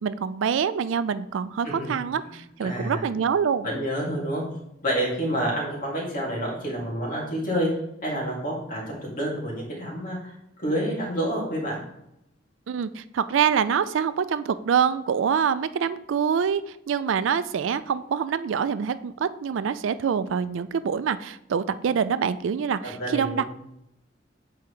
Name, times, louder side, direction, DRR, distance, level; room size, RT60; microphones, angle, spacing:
voice 1, 0.0-3.7 12.7-23.4, right 7 dB, 80° right, 13 dB, 0.4 m, -25 dB
voice 2, 2.6-3.0 3.6-4.4 4.8-7.7 8.0-11.8 23.0-23.5, right 1 dB, 45° left, -3 dB, 2.3 m, -28 dB
7.7 x 4.6 x 3.2 m, 0.81 s
head